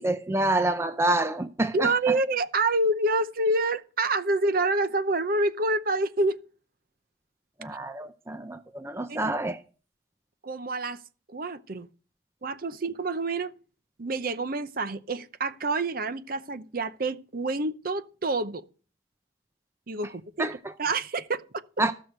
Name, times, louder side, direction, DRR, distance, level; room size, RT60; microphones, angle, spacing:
voice 1, 0.0-1.9 7.6-9.6 20.4-20.7 21.8-21.9, right 2 dB, 15° right, 0.5 m, -27 dB
voice 2, 1.7-6.4 9.1-9.3 10.4-11.0 11.3-11.9 12.4-13.5 14.0-18.6 19.9-20.5 20.8-21.6, right 2 dB, 50° right, 0.7 m, -27 dB
14.5 x 6.4 x 6.6 m
head